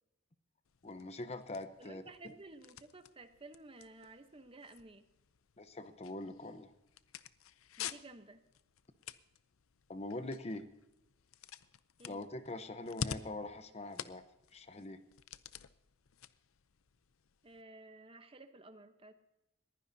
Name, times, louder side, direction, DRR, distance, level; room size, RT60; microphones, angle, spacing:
sound 1, 0.7-17.6, left 7 dB, 90° left, 0.6 m, -49 dB
voice 1, 0.8-2.0 5.6-6.7 9.9-10.7 12.1-14.2 14.5-15.0, left 2 dB, 30° left, 10 dB, 0.8 m, -43 dB
voice 2, 1.8-5.1 7.8-8.4 12.0-12.2 17.4-19.1, right 2 dB, 25° right, 9 dB, 0.9 m, -54 dB
21.5 x 15.5 x 2.7 m, 0.92 s
head